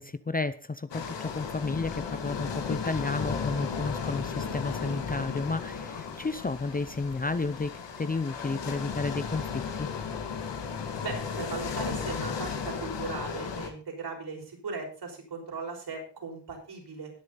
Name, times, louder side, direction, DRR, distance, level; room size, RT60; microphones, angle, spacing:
voice 1, 0.0-9.9, left 3 dB, 20° left, 13 dB, 0.6 m, -32 dB
sound 1, 0.9-13.7, left 6 dB, 85° left, 2.2 m, -35 dB
voice 2, 11.0-17.1, right 4 dB, 65° right, 0 dB, 6.0 m, -38 dB
20.0 x 7.0 x 4.1 m, 0.36 s
cardioid pair, 95°, 42 cm